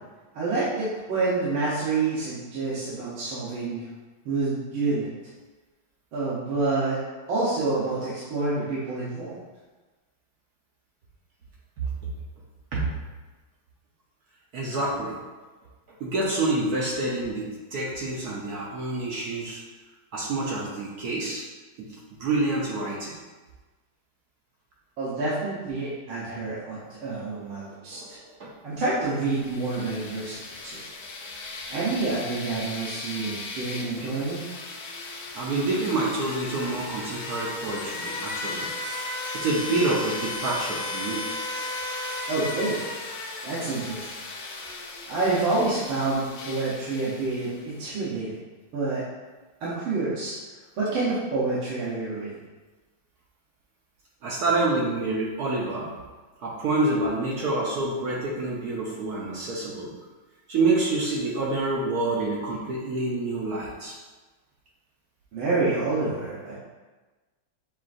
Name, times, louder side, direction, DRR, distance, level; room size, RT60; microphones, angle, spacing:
voice 1, 0.3-3.8 4.2-5.1 6.1-7.0 7.3-9.4 25.0-28.2 28.6-30.8 31.7-34.5 42.3-42.8 43.4-44.1 45.1-48.4 48.7-49.0 49.6-50.3 50.8-52.3 65.3-66.5, right 3 dB, 85° right, -10 dB, 1.8 m, -28 dB
voice 2, 14.5-15.2 16.0-19.6 20.1-21.4 21.8-21.9 22.2-23.1 27.9-28.1 28.4-28.5 35.3-38.7 39.3-41.2 54.2-55.9 56.4-59.9 60.5-64.0, right 2 dB, 65° right, -4 dB, 0.9 m, -27 dB
sound 1, 29.1-47.8, left 2 dB, 70° left, 0.9 m, -36 dB
7.2 x 2.5 x 2.5 m, 1.3 s
omnidirectional pair, 2.2 m